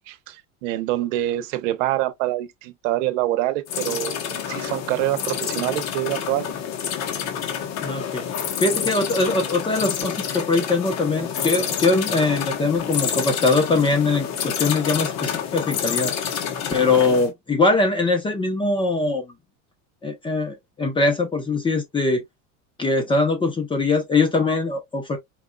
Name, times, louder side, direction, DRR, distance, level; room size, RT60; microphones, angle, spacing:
voice 1, 0.1-6.6, right 15 dB, 65° right, 1.0 m, -26 dB
sound 1, 3.7-17.3, left 8 dB, 40° left, 1.2 m, -28 dB
voice 2, 7.8-8.2 8.6-16.1 16.7-19.3 20.0-22.2 22.8-25.2, left 3 dB, 15° left, 0.8 m, -22 dB
4.7 x 3.7 x 2.3 m
supercardioid pair, 155°, 39 cm